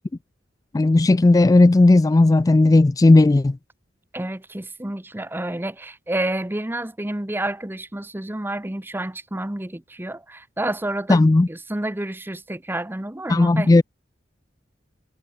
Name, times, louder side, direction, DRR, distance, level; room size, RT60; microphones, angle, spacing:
voice 1, 0.7-3.6 11.1-11.5 13.3-13.8, left 2 dB, 20° left, 0.3 m, -15 dB
voice 2, 4.1-13.7, right 1 dB, 10° right, 0.8 m, -29 dB
head